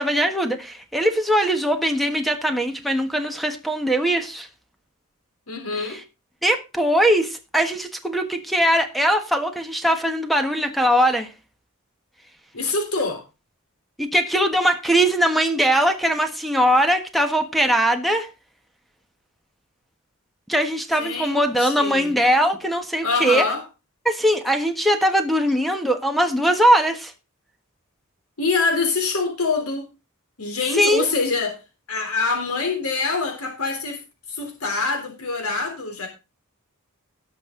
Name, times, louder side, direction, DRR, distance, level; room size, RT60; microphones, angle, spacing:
voice 1, 0.0-4.5 5.8-6.0 6.4-11.3 14.0-18.3 20.5-23.4 24.0-27.1 30.7-31.1, equal, ahead, 1.4 m, -21 dB
voice 2, 5.5-6.0 12.5-13.2 21.0-22.1 23.0-23.6 28.4-29.9 30.4-31.6 31.9-34.0 34.3-36.1, left 4 dB, 80° left, 3.5 m, -25 dB
18.5 x 6.3 x 3.8 m
head